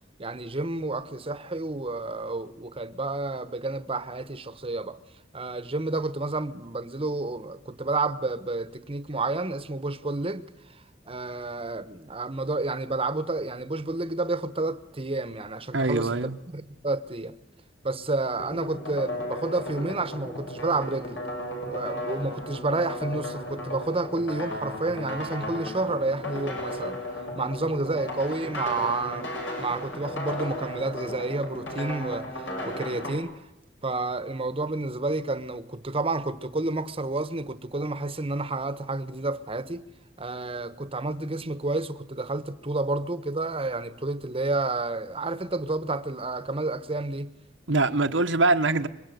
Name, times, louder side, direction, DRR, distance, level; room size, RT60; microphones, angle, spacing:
voice 1, 0.2-5.0 5.3-10.5 11.1-17.4 17.8-21.2 21.7-27.0 27.3-29.3 29.6-33.4 33.8-39.9 40.2-47.3, right 2 dB, 30° right, 1.2 m, -30 dB
voice 2, 15.7-16.4 47.7-48.9, right 2 dB, 85° right, 1.4 m, -23 dB
sound 1, 18.4-33.1, left 1 dB, 80° left, 7.9 m, -35 dB
26.0 x 22.5 x 9.3 m
head